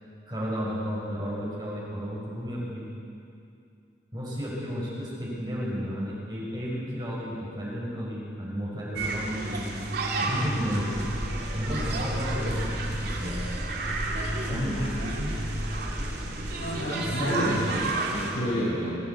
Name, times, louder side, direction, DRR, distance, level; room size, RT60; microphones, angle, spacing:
voice 1, 0.3-2.9 4.1-9.7 10.2-11.0 11.5-13.4 14.4-15.3, equal, 25° right, -5 dB, 5.6 m, -33 dB
sound 1, 9.0-18.3, right 2 dB, 60° right, 3.1 m, -31 dB
sound 2, 10.9-16.5, equal, ahead, 6.0 m, -36 dB
voice 2, 14.5-14.9 16.6-19.0, equal, 75° left, -9 dB, 7.1 m, -29 dB
22.0 x 15.5 x 8.5 m, 2.5 s
head